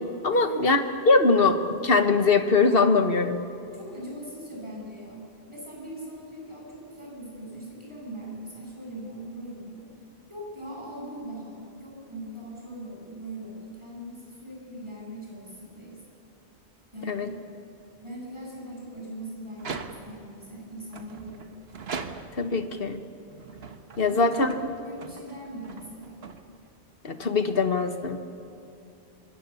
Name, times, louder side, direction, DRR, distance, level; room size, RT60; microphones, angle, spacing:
voice 1, 0.2-3.4 17.1-17.3 22.4-23.0 24.0-24.5 27.0-28.2, left 3 dB, 60° left, 8 dB, 1.5 m, -22 dB
voice 2, 3.7-5.2 5.5-9.8 10.3-16.0 16.9-17.4 18.0-21.4 24.0-26.2, right 1 dB, 25° right, -4 dB, 8.1 m, -40 dB
sound 1, 19.5-20.3 20.9-22.6 23.3-26.8, right 5 dB, 70° right, 1.4 m, -41 dB
25.0 x 24.0 x 7.1 m, 2.7 s
omnidirectional pair, 1.1 m